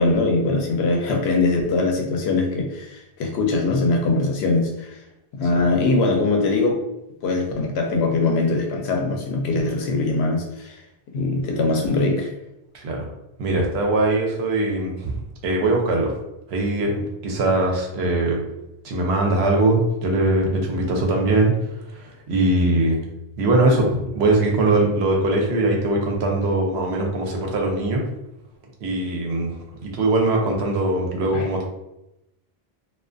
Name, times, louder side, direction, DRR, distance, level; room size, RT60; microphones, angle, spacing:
voice 1, 0.0-5.0 5.3-6.8 7.2-10.8 11.1-12.3 31.3-31.5, left 3 dB, 85° left, 2 dB, 0.8 m, -22 dB
voice 2, 12.7-13.1 13.4-15.2 15.4-16.1 16.5-18.4 18.8-21.5 21.9-23.0 23.4-28.0 28.8-29.5 29.8-31.6, right 2 dB, 85° right, 0 dB, 0.9 m, -21 dB
2.3 x 2.3 x 2.5 m, 0.89 s
omnidirectional pair, 1.0 m